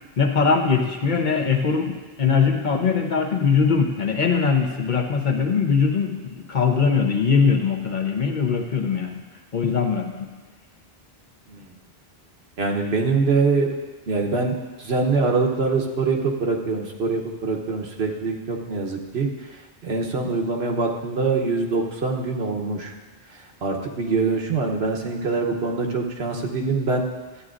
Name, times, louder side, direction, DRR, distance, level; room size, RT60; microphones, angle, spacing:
voice 1, 0.2-9.2 9.5-10.3, left 5 dB, 50° left, 2 dB, 0.9 m, -21 dB
voice 2, 12.6-13.7 14.1-22.9 23.3-27.1, right 4 dB, 80° right, 1 dB, 1.2 m, -24 dB
12.5 x 9.3 x 2.5 m, 1.3 s
omnidirectional pair, 1.0 m